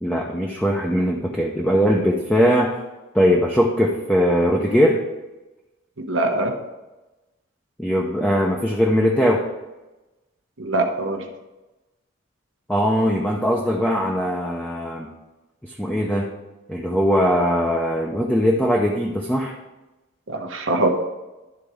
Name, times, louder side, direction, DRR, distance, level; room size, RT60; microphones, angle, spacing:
voice 1, 0.0-2.7 3.1-5.0 7.8-9.5 12.7-15.1 15.6-16.4 16.7-19.5, equal, 5° left, -2 dB, 0.6 m, -20 dB
voice 2, 6.0-6.5 10.6-11.3 20.3-20.9, right 2 dB, 70° right, 3 dB, 0.9 m, -23 dB
11.5 x 4.0 x 4.8 m, 1.1 s
head